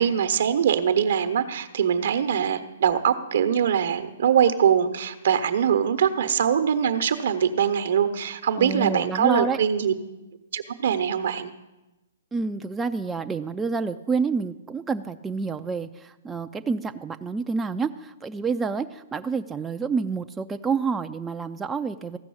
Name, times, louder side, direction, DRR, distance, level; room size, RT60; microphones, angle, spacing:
voice 1, 0.0-9.9 10.5-11.5, right 8 dB, 65° right, 10 dB, 1.0 m, -22 dB
voice 2, 8.6-9.6 12.3-22.2, right 5 dB, 10° right, 6 dB, 0.5 m, -28 dB
14.5 x 6.1 x 8.6 m, 1.0 s
hypercardioid pair, 130°, 0 cm